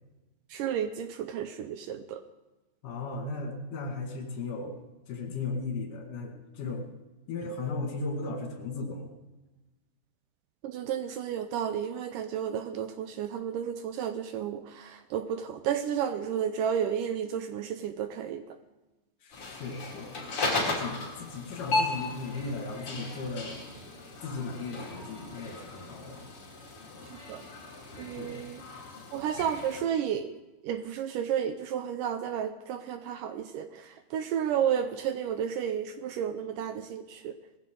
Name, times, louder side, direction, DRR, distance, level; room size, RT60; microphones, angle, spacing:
voice 1, 0.5-2.2 10.6-18.4 27.3-27.4 28.0-28.6 29.1-30.4 30.6-37.3, right 8 dB, 80° right, 10 dB, 2.0 m, -32 dB
voice 2, 2.8-4.7 5.1-6.9 7.3-9.1 19.2-20.1 20.7-23.6 24.2-26.2 28.2-28.4, left 3 dB, 65° left, 2 dB, 3.5 m, -36 dB
sound 1, 19.3-29.8, left 2 dB, 40° left, 3.3 m, -36 dB
19.0 x 15.0 x 3.8 m, 1.1 s
omnidirectional pair, 4.2 m